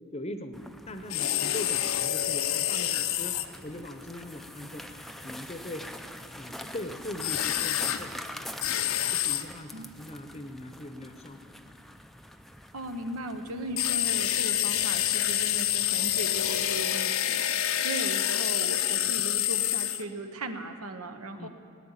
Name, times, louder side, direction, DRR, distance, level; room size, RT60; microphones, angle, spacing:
voice 1, 0.1-3.3 3.6-5.8 6.3-8.2 9.1-11.8 21.4-21.5, left 1 dB, 30° left, 8 dB, 0.7 m, -41 dB
sound 1, 0.5-17.0, equal, ahead, 0.4 m, -45 dB
sound 2, 1.1-3.4 7.2-8.0 8.6-9.4 13.8-20.0, left 12 dB, 70° left, 0.6 m, -27 dB
voice 2, 12.7-17.5 17.8-21.5, right 2 dB, 85° right, 7 dB, 1.0 m, -37 dB
17.0 x 9.6 x 7.2 m, 2.4 s
head